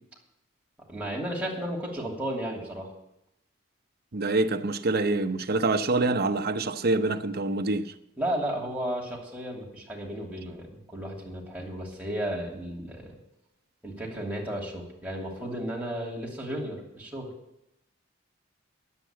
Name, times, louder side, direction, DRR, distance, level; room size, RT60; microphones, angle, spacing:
voice 1, 0.9-2.9 8.2-13.2 13.8-17.3, right 1 dB, 5° right, 2.8 m, -34 dB
voice 2, 4.1-7.9, right 2 dB, 55° right, 0.8 m, -26 dB
10.0 x 8.1 x 8.9 m
head